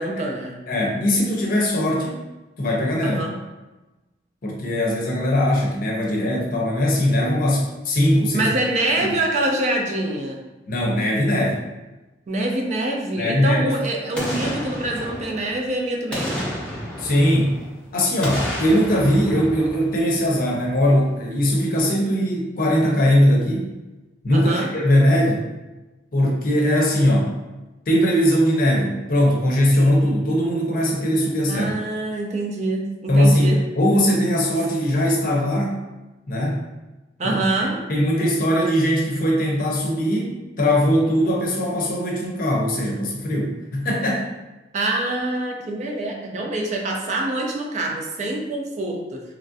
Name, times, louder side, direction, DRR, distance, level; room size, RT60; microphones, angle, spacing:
voice 1, 0.0-0.6 3.0-3.4 8.3-10.4 12.3-16.4 24.3-24.7 31.5-33.6 37.2-37.8 44.7-49.2, right 2 dB, 40° right, 0 dB, 0.4 m, -25 dB
voice 2, 0.7-2.2 2.6-3.2 4.4-8.5 9.0-9.2 10.7-11.6 13.2-13.8 17.0-17.5 17.9-23.7 24.2-25.4 26.1-27.4 27.9-31.7 33.1-35.8 36.3-36.6 37.2-44.3, equal, 50° left, -1 dB, 0.6 m, -20 dB
Boom, 14.1-15.7 16.1-17.7 18.2-20.5 20.8-20.9, equal, 5° left, 0.6 m, -31 dB
3.1 x 2.5 x 2.5 m, 1.1 s
head